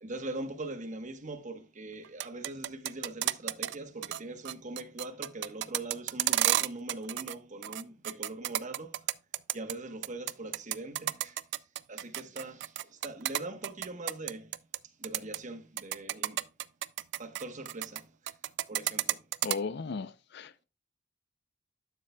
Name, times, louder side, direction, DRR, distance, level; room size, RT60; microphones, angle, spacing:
voice 1, 0.0-9.1 9.5-11.4 11.9-14.6 15.0-16.4 17.2-18.4 18.7-19.2, right 2 dB, 40° right, 1.1 m, -42 dB
sound 1, 2.0-3.7 4.0-4.2 4.4-7.3 7.6-9.7 10.0-14.8 15.0-15.4 15.8-18.0 18.3-19.6, right 14 dB, 65° right, 0.4 m, -31 dB
voice 2, 19.4-20.6, left 4 dB, 60° left, 0.5 m, -36 dB
12.0 x 6.8 x 2.2 m
head